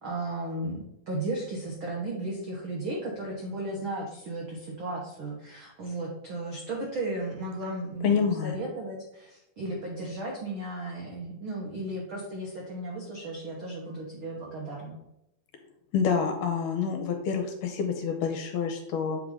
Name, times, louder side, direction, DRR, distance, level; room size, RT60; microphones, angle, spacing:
voice 1, 0.0-15.0, right 2 dB, 85° right, -2 dB, 1.1 m, -35 dB
voice 2, 8.0-8.6 15.9-19.2, left 6 dB, 75° left, 4 dB, 2.2 m, -27 dB
7.7 x 3.8 x 4.9 m, 0.85 s
omnidirectional pair, 4.1 m